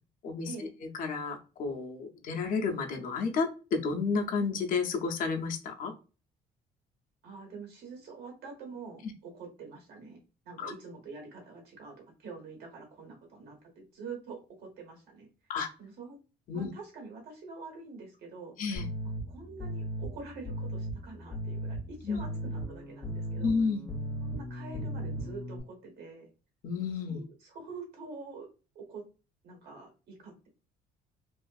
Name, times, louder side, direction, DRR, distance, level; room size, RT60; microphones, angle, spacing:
voice 1, 0.2-0.7 1.0-5.9 10.6-10.7 15.5-15.7 16.5-16.7 18.6-18.9 22.0-22.2 23.4-23.9 26.6-27.2, left 5 dB, 55° left, 3 dB, 0.6 m, -31 dB
voice 2, 7.2-15.3 15.8-16.2 16.5-18.5 19.3-23.5 24.2-26.3 27.1-28.5 28.7-29.0 29.4-30.5, right 4 dB, 70° right, 1 dB, 1.3 m, -46 dB
sound 1, 18.7-25.6, equal, 15° left, 0.6 m, -37 dB
2.5 x 2.4 x 2.3 m, 0.33 s
cardioid pair, 110°, 17 cm